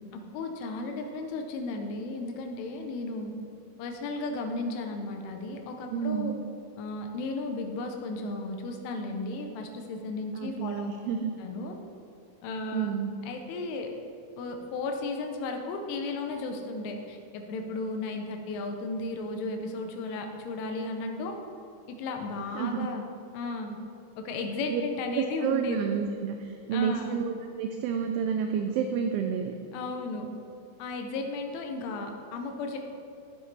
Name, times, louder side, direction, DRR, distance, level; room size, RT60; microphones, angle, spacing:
voice 1, 0.1-3.4 3.8-6.4 6.8-10.9 11.4-11.8 12.4-12.9 13.2-13.9 14.4-21.4 21.9-23.1 23.3-23.8 24.2-25.9 26.7-27.2 29.7-30.3 30.8-32.8, left 3 dB, 80° left, 4 dB, 3.2 m, -34 dB
voice 2, 5.9-6.4 10.4-11.3 12.7-13.1 22.6-22.8 24.7-24.8 25.1-29.5, right 7 dB, 85° right, 5 dB, 2.8 m, -29 dB
14.5 x 7.5 x 3.4 m, 2.5 s
omnidirectional pair, 5.8 m